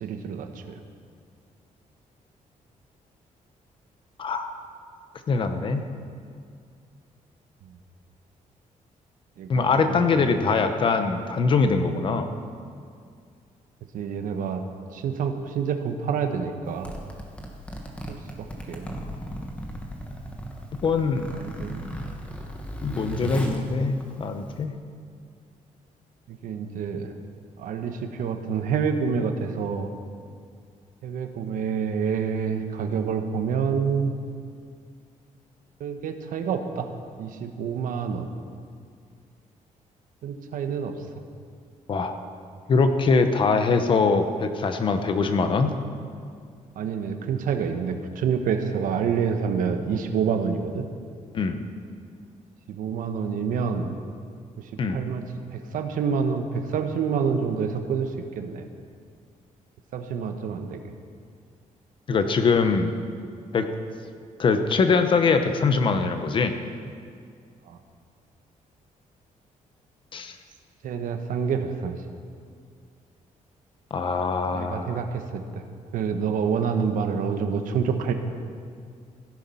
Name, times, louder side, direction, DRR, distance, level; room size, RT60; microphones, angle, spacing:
voice 1, 0.0-0.8 9.4-10.4 12.3-12.4 13.9-14.6 14.9-16.9 18.1-18.9 21.3-21.9 26.3-27.1 27.6-29.9 31.0-34.1 35.8-36.9 37.2-38.3 40.2-41.0 46.8-50.9 52.7-53.9 54.6-55.2 55.5-58.7 59.9-60.9 67.7-67.8 70.8-72.0 74.5-75.6 75.9-78.1, right 6 dB, 85° right, 6 dB, 1.1 m, -28 dB
voice 2, 4.2-4.5 5.3-5.9 9.5-12.3 20.8-21.3 22.8-24.7 41.9-42.2 42.7-45.8 51.3-51.6 54.8-55.0 62.1-62.9 63.5-63.6 64.4-66.6 70.1-70.3 73.9-75.0, left 4 dB, 40° left, 7 dB, 0.9 m, -23 dB
Zipper (clothing), 16.7-24.6, equal, 10° left, 1.3 m, -37 dB
16.0 x 10.5 x 5.6 m, 2.2 s
cardioid pair, 175°, 14 cm